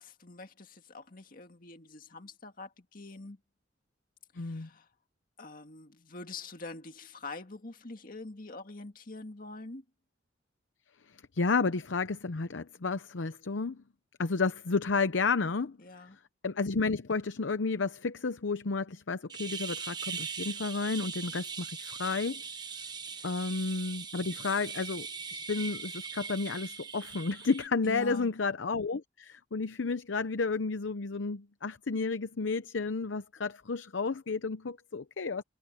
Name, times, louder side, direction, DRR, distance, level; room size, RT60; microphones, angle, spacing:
voice 1, 0.0-3.4 4.3-4.9 5.4-9.8 15.8-16.2 23.1-23.3 24.3-24.4 27.8-28.3, left 3 dB, 50° left, 2.0 m, -45 dB
voice 2, 4.4-4.7 11.3-13.8 14.2-15.8 16.1-22.4 23.2-35.4, left 4 dB, 85° left, 0.7 m, -32 dB
sound 1, 19.3-27.7, right 5 dB, 25° right, 1.1 m, -40 dB
head